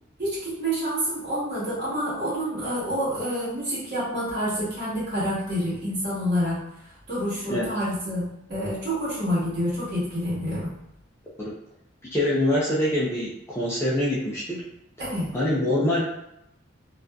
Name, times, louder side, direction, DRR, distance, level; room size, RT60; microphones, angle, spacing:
voice 1, 0.2-6.6 7.1-8.2 8.5-10.7 15.0-15.3, equal, 50° right, -9 dB, 1.2 m, -28 dB
voice 2, 12.1-14.6 15.3-16.0, left 1 dB, 10° left, -8 dB, 0.4 m, -24 dB
2.6 x 2.4 x 2.2 m, 0.83 s
head